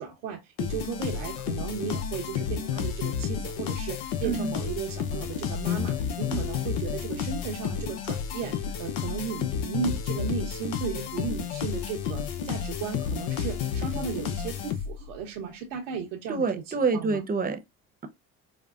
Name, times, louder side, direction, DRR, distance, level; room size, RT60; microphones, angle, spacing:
voice 1, 0.0-16.5 16.7-17.2, right 7 dB, 85° right, 0.8 m, -35 dB
sound 1, 0.6-15.1, left 8 dB, 70° left, 0.7 m, -31 dB
voice 2, 16.3-17.6, right 4 dB, 25° right, 0.8 m, -27 dB
5.0 x 2.1 x 2.4 m
hypercardioid pair, 70°, 38 cm